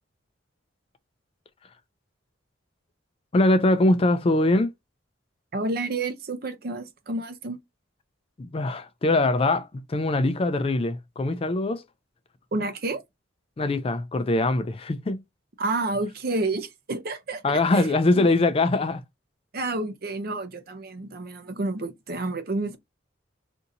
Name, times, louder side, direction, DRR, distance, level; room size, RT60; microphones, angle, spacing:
voice 1, 3.3-4.7 8.4-11.8 13.6-15.2 17.4-19.0, left 2 dB, 30° left, 0.4 m, -22 dB
voice 2, 5.5-7.6 12.5-13.0 15.6-18.3 19.5-22.8, right 2 dB, 55° right, 0.6 m, -30 dB
2.7 x 2.6 x 3.7 m
head